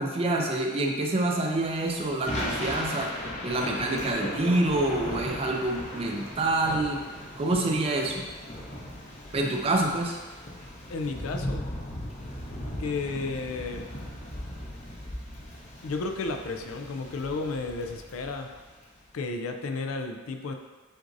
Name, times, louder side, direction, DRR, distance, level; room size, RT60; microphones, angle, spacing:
voice 1, 0.0-7.0 7.4-8.3 9.3-10.2, right 2 dB, 30° right, 1 dB, 0.4 m, -27 dB
Thunder / Rain, 1.4-18.9, left 1 dB, 30° left, 0.6 m, -38 dB
voice 2, 10.9-11.7 12.8-13.9 15.8-18.5 19.1-20.5, left 3 dB, 85° left, 5 dB, 0.4 m, -32 dB
7.7 x 2.6 x 2.6 m, 1.3 s
head